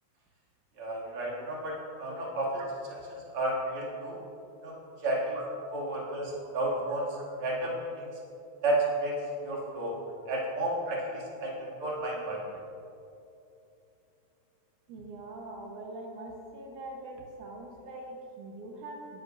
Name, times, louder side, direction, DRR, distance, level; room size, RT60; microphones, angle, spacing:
voice 1, 0.8-2.5 3.3-4.2 4.6-4.7 5.0-5.4 5.7-7.1 7.4-8.1 8.6-9.1 9.4-9.9 10.3-11.0 11.4-11.5 11.8-12.4, right 2 dB, 45° right, -5 dB, 3.3 m, -31 dB
voice 2, 14.9-19.2, right 2 dB, 85° right, -1 dB, 2.8 m, -43 dB
20.0 x 11.0 x 2.7 m, 2.7 s
omnidirectional pair, 3.4 m